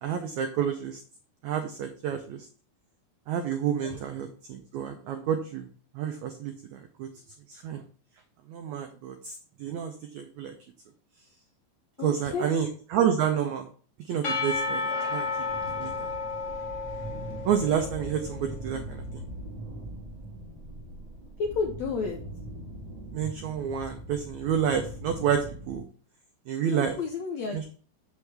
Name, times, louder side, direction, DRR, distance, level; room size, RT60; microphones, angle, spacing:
voice 1, 0.0-1.0 1.4-2.5 3.3-5.7 5.9-7.1 7.5-7.8 8.5-10.5 12.0-13.7 14.0-15.3 15.8-16.1 17.4-19.0 23.1-25.8 26.5-27.0 27.5-27.7, right 8 dB, 85° right, 6 dB, 1.6 m, -29 dB
voice 2, 12.0-12.5 21.4-22.2 26.7-27.7, left 4 dB, 85° left, 3 dB, 1.6 m, -31 dB
Percussion / Church bell, 14.2-18.2, left 4 dB, 40° left, 2.5 m, -32 dB
sound 1, 15.4-25.8, right 1 dB, 60° right, 0.4 m, -41 dB
7.2 x 6.2 x 3.3 m, 0.41 s
omnidirectional pair, 4.1 m